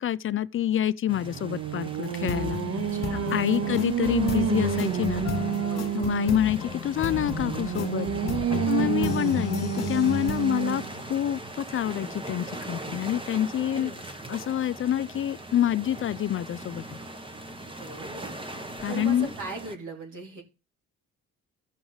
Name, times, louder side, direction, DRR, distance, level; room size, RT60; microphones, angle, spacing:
voice 1, 0.0-2.6 3.1-5.2 5.9-8.1 8.7-13.9 14.3-17.0 18.8-19.3, left 11 dB, 45° left, 0.4 m, -27 dB
sound 1, 1.1-19.7, right 1 dB, 15° right, 1.1 m, -41 dB
Singing, 1.1-6.5 7.1-11.0, right 11 dB, 50° right, 0.6 m, -29 dB
sound 2, 2.0-11.6, left 7 dB, 65° left, 1.4 m, -34 dB
voice 2, 2.9-3.9 5.7-6.4 8.7-9.2 10.3-10.4 13.7-14.1 17.8-18.3 18.9-20.4, right 4 dB, 80° right, 3.3 m, -40 dB
14.5 x 6.0 x 3.9 m
cardioid pair, 90°, 30 cm